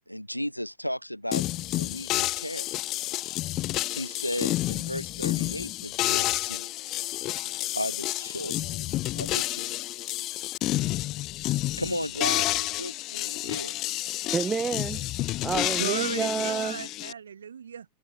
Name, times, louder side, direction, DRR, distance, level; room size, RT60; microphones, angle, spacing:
voice 1, 0.1-1.4 1.8-2.7 3.9-6.7 7.8-9.8 11.8-13.7, equal, 90° left, 2.3 m, -35 dB
sound 1, 1.3-17.1, left 17 dB, 35° left, 0.7 m, -30 dB
voice 2, 14.3-15.1 15.4-16.8, right 5 dB, 15° right, 4.6 m, -29 dB
voice 3, 15.8-17.9, right 7 dB, 70° right, 3.5 m, -34 dB
figure-of-eight pair, 90°, 0 cm